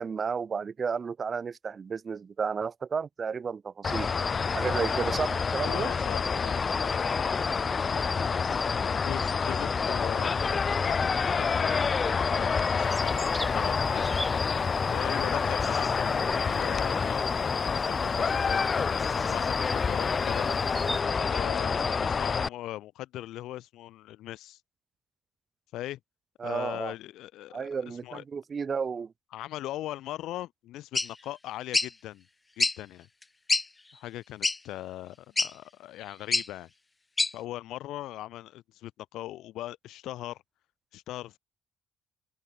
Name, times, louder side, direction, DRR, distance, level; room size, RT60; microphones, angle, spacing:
voice 1, 0.0-4.1 4.5-5.9 26.4-26.9 27.5-29.1, right 6 dB, 35° right, 2.9 m, -32 dB
sound 1, 3.8-22.5, left 5 dB, 35° left, 2.6 m, -27 dB
voice 2, 5.6-7.0 7.8-14.3 14.9-20.5 21.2-24.6 25.7-26.0 26.4-28.2 29.3-32.3 32.6-33.1 33.9-36.7 37.3-40.4 40.9-41.4, left 14 dB, 75° left, 6.8 m, -40 dB
sound 2, 12.8-21.0, equal, ahead, 4.5 m, -42 dB
sound 3, 30.9-31.1 31.7-31.9 32.6-32.8 33.2-33.3 33.5-33.6 34.4-34.6 35.4-35.5 36.3-36.5 37.2-37.3, left 3 dB, 20° left, 2.3 m, -25 dB
open air
cardioid pair, 100°, 0 cm